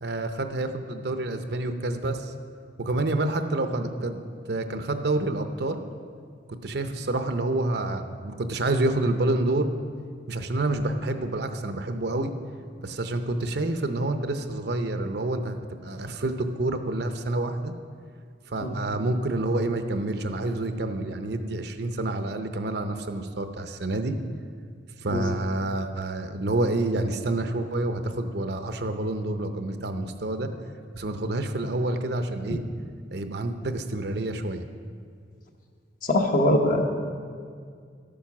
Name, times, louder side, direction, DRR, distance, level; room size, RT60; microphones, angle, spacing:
voice 1, 0.0-2.3 2.8-4.2 4.5-5.8 6.6-9.7 10.3-12.3 12.8-15.6 15.8-17.7 18.5-24.2 25.0-30.5 30.9-32.6 33.1-34.6, right 2 dB, 60° right, 8 dB, 0.7 m, -28 dB
voice 2, 36.0-36.8, left 1 dB, 50° left, 3 dB, 1.1 m, -22 dB
12.5 x 8.7 x 6.0 m, 2.2 s
head